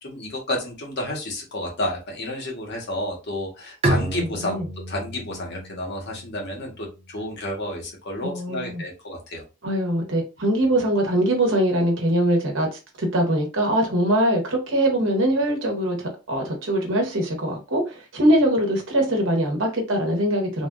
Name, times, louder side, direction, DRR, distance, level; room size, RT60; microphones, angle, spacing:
voice 1, 0.0-4.6 4.9-9.4, left 1 dB, 55° left, 1.1 m, -31 dB
Bowed string instrument, 3.8-7.4, right 1 dB, 30° right, 0.6 m, -30 dB
voice 2, 4.2-4.6 8.2-8.8 9.6-20.7, right 1 dB, 65° right, 1.1 m, -22 dB
3.4 x 2.4 x 2.3 m
head